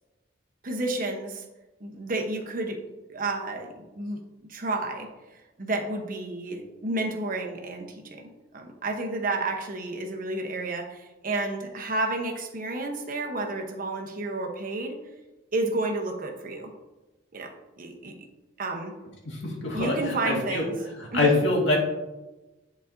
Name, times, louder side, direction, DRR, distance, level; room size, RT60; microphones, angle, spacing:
voice 1, 0.6-1.4 1.8-2.8 3.1-4.2 4.5-5.1 5.6-8.3 8.5-15.0 15.5-16.7 17.3-18.2 18.6-18.9 19.7-20.7 21.1-21.3, right 2 dB, 50° right, 2 dB, 0.9 m, -31 dB
voice 2, 19.3-20.7 21.0-21.8, left 2 dB, 75° left, -2 dB, 1.8 m, -25 dB
10.0 x 4.1 x 2.7 m, 1.1 s
head